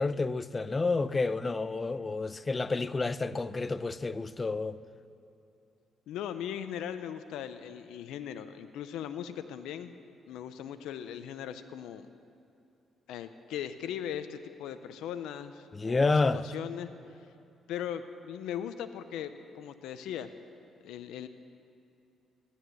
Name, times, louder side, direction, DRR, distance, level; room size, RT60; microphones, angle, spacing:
voice 1, 0.0-4.8 15.7-16.4, left 3 dB, 25° left, 0.5 m, -29 dB
voice 2, 6.1-9.9 10.2-12.1 13.1-16.9 17.7-20.3 20.8-21.3, left 9 dB, 90° left, 0.6 m, -39 dB
15.5 x 11.5 x 7.7 m
cardioid pair, 90°, 0 cm